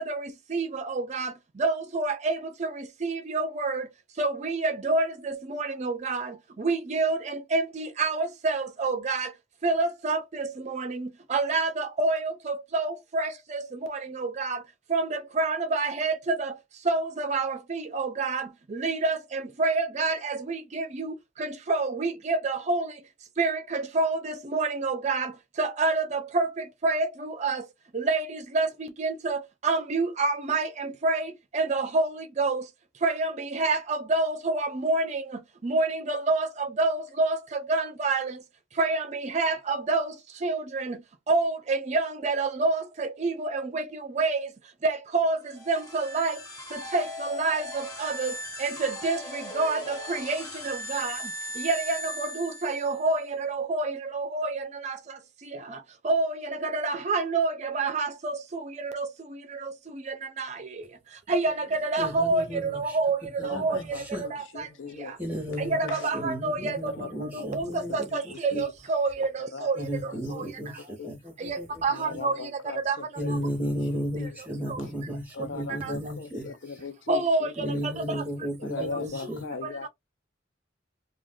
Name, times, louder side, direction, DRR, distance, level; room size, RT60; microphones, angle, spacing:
voice 1, 0.0-9.3 9.6-23.0 23.4-27.7 27.9-38.4 38.7-44.5 44.8-46.4 46.7-65.2 65.6-70.8 71.4-73.4 74.2-74.8 75.7-75.9 76.4-76.5 77.1-78.3 78.8-79.9, right 3 dB, 35° right, 0.4 m, -28 dB
sound 1, 45.4-53.1, equal, 20° left, 0.9 m, -38 dB
voice 2, 62.0-62.8 63.5-64.2 65.2-68.1 68.5-68.6 69.8-71.8 72.1-72.2 73.2-76.5 77.6-79.4, equal, 10° right, 1.0 m, -34 dB
voice 3, 63.4-65.1 65.6-66.0 67.0-67.1 68.5-68.6 69.5-69.7 70.3-70.4 71.0-71.1 72.0-73.3 73.6-73.7 74.2-74.3 75.3-77.8 78.6-79.9, left 4 dB, 80° left, 0.6 m, -38 dB
2.5 x 2.3 x 3.6 m
head